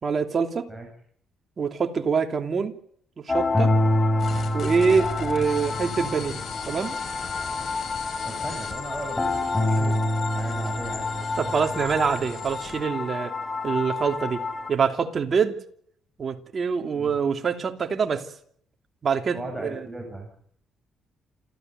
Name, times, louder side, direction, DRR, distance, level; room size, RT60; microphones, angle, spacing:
voice 1, 0.0-0.7 1.6-2.7 3.3-3.7 4.5-6.4 6.6-7.0 11.4-13.3 13.6-14.4 14.7-15.6 16.2-18.2 19.0-19.8, right 5 dB, 45° right, 5 dB, 2.9 m, -25 dB
sound 1, 3.3-14.7, left 2 dB, 20° left, 4.0 m, -27 dB
sound 2, 4.2-12.8, left 6 dB, 55° left, 7.2 m, -39 dB
voice 2, 8.2-11.3 16.9-17.2 19.3-20.3, right 1 dB, 10° right, 1 dB, 7.7 m, -37 dB
28.5 x 13.5 x 9.3 m, 0.66 s
cardioid pair, 90°, 0 cm